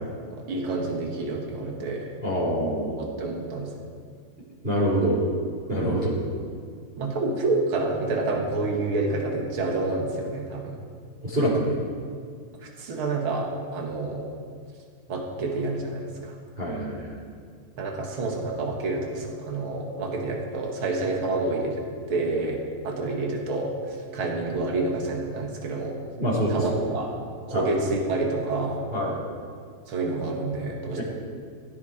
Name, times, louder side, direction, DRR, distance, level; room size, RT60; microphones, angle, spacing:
voice 1, 0.3-2.1 3.0-3.8 7.0-10.8 12.6-14.3 15.1-16.3 17.8-26.0 26.5-27.2 27.5-28.9 29.9-31.0, right 2 dB, 70° right, 0 dB, 2.7 m, -28 dB
voice 2, 2.2-2.9 4.6-5.2 5.7-6.2 11.2-11.7 16.6-17.2 26.2-26.6 27.5-27.7 28.9-29.1 31.0-31.1, right 1 dB, 25° right, -8 dB, 4.3 m, -25 dB
18.5 x 15.5 x 4.4 m, 2.1 s
omnidirectional pair, 2.4 m